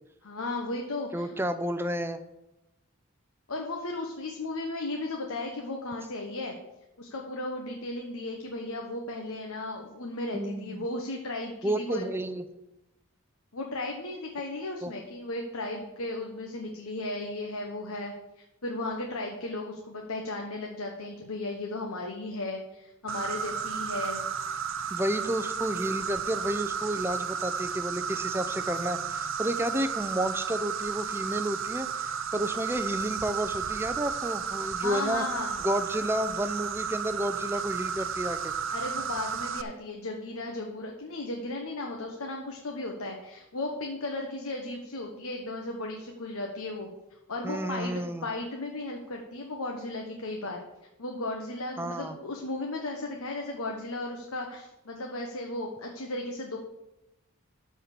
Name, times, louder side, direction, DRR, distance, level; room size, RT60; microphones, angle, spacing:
voice 1, 0.2-1.3 3.5-6.5 7.0-12.1 13.5-24.2 34.8-35.6 38.7-46.9 47.3-50.6 51.0-56.6, left 2 dB, 75° left, 1 dB, 1.2 m, -35 dB
voice 2, 1.1-2.2 10.3-10.9 11.6-12.4 14.8-14.9 24.9-35.2 35.6-38.5 47.4-48.3 51.8-52.2, right 1 dB, 10° right, 10 dB, 0.5 m, -31 dB
Insect, 23.1-39.6, right 7 dB, 60° right, 0.6 m, -33 dB
13.0 x 4.4 x 6.7 m, 0.94 s
head